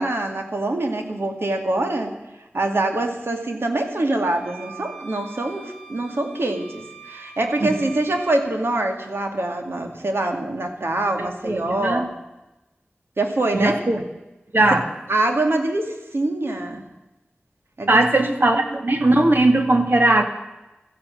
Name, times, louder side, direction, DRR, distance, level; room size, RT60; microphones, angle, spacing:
voice 1, 0.0-2.2 2.5-12.1 13.2-13.8 15.1-16.8 17.8-18.2, right 2 dB, 75° right, 4 dB, 2.4 m, -24 dB
sound 1, 4.2-8.4, right 6 dB, ahead, 6.1 m, -43 dB
voice 2, 11.2-12.1 13.5-14.0 14.5-14.8 17.9-20.2, right 2 dB, 55° right, 5 dB, 2.1 m, -19 dB
15.5 x 14.5 x 6.3 m, 1.0 s
wide cardioid pair, 55°, 4 cm